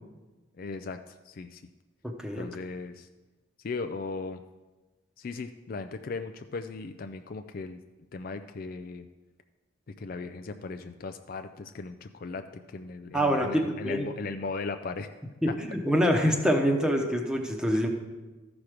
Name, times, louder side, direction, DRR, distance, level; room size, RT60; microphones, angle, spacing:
voice 1, 0.6-1.6 2.4-3.1 3.6-4.4 5.2-7.8 8.1-9.0 10.0-12.4 12.7-15.1, left 4 dB, 45° left, 8 dB, 0.4 m, -37 dB
voice 2, 2.0-2.5 13.1-14.1 15.4-17.9, equal, 5° right, 2 dB, 0.9 m, -25 dB
13.5 x 6.0 x 5.0 m, 1.2 s
head